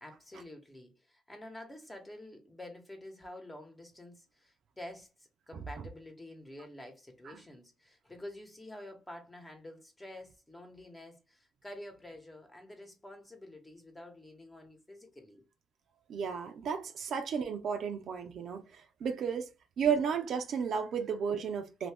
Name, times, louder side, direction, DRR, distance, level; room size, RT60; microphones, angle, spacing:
voice 1, 0.0-5.1 5.5-15.4, left 1 dB, 15° left, 1.1 m, -49 dB
voice 2, 16.1-19.5 19.8-21.9, right 6 dB, 65° right, 0.6 m, -33 dB
2.8 x 2.6 x 3.4 m
cardioid pair, 90°, 0 cm